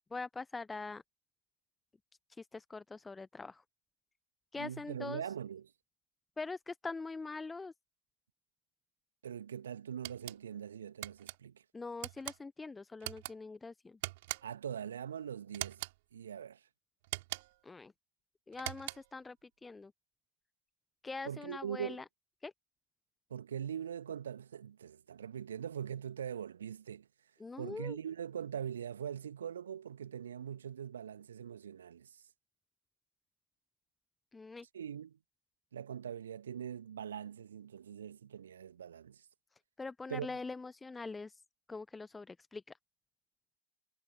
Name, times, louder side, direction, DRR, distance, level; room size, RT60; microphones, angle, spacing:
voice 1, 0.1-1.0 2.3-3.6 4.5-5.3 6.4-7.7 11.7-14.0 17.6-17.9 18.5-19.9 21.0-22.0 22.4-22.5 27.4-28.0 34.3-34.7 39.8-41.4 41.7-42.8, left 3 dB, 10° left, 0.9 m, -43 dB
voice 2, 4.6-5.7 9.2-11.6 14.4-15.8 16.1-16.6 21.3-22.0 23.3-27.1 27.6-32.2 34.7-35.2 35.7-39.3 40.1-40.3, right 8 dB, 65° right, 2.0 m, -42 dB
sound 1, 10.0-10.4 11.0-11.4 12.0-12.4 13.0-13.3 14.0-14.6 15.5-16.0 17.0-17.6 18.5-19.2, right 21 dB, 50° right, 3.8 m, -42 dB
figure-of-eight pair, 90°, 0 cm